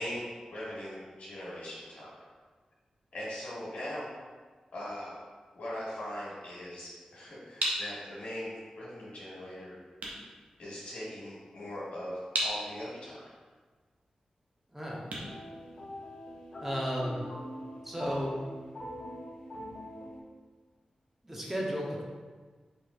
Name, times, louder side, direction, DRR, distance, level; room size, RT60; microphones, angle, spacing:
voice 1, 0.0-2.1 3.1-4.1 4.7-5.2 5.5-9.7 10.6-13.3, left 1 dB, 85° left, -7 dB, 1.4 m, -40 dB
sound 1, 6.9-16.4, right 1 dB, 85° right, 0.7 m, -39 dB
voice 2, 14.7-15.2 16.6-17.2 17.8-18.4 21.2-22.0, equal, 10° right, -3 dB, 1.0 m, -34 dB
sound 2, 15.2-20.2, equal, 55° left, 1.2 m, -43 dB
4.9 x 3.0 x 2.6 m, 1.4 s
cardioid pair, 50°, 2 cm